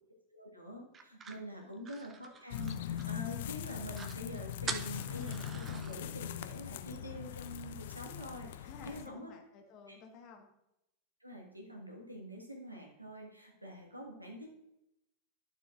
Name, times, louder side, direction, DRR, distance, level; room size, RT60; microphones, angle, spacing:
voice 1, 0.3-9.3 11.2-14.5, equal, 85° right, 0 dB, 1.6 m, -46 dB
sound 1, 0.9-3.3 3.6-3.7 3.9-4.2 4.7-6.0, right 5 dB, 20° right, 0.6 m, -44 dB
sound 2, 2.5-9.1, left 10 dB, 55° left, 0.4 m, -41 dB
voice 2, 8.6-10.5, left 5 dB, 35° left, 3 dB, 1.3 m, -53 dB
11.5 x 6.7 x 2.5 m, 0.84 s
figure-of-eight pair, 90°, 0 cm